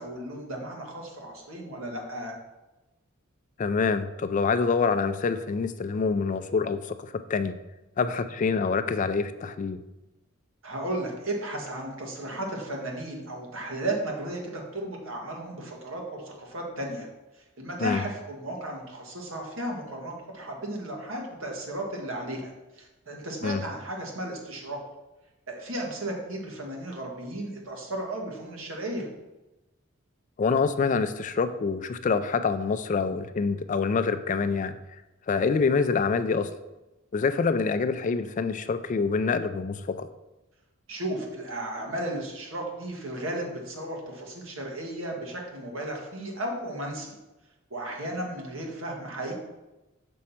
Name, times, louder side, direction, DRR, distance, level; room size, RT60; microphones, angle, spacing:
voice 1, 0.0-2.3 10.6-17.1 17.4-24.8 25.5-29.1 40.9-47.2 47.7-49.3, right 1 dB, 75° right, 0 dB, 1.6 m, -34 dB
voice 2, 3.6-7.5 8.0-9.8 17.8-18.0 23.4-23.6 30.4-34.8 35.3-36.5 37.1-40.1, left 5 dB, 40° left, 11 dB, 0.3 m, -26 dB
6.2 x 4.3 x 5.7 m, 1.0 s
head